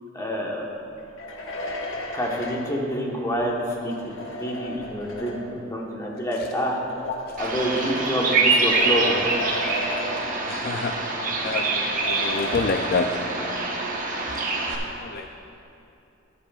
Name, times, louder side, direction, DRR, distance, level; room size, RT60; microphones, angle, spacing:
voice 1, 0.1-0.6 2.1-6.8 7.4-9.3, equal, 15° left, -2 dB, 1.3 m, -27 dB
sound 1, 1.0-5.7 6.6-10.8 11.1-11.2 11.8-13.4, left 1 dB, 85° left, 1.2 m, -35 dB
voice 2, 7.0-7.4 10.4-11.1 11.4-13.1 14.3-15.3, left 4 dB, 50° left, 4 dB, 0.4 m, -29 dB
Bird vocalization bird call bird song, 7.4-14.8, right 3 dB, 45° right, 1.1 m, -25 dB
14.5 x 10.0 x 2.4 m, 2.7 s
head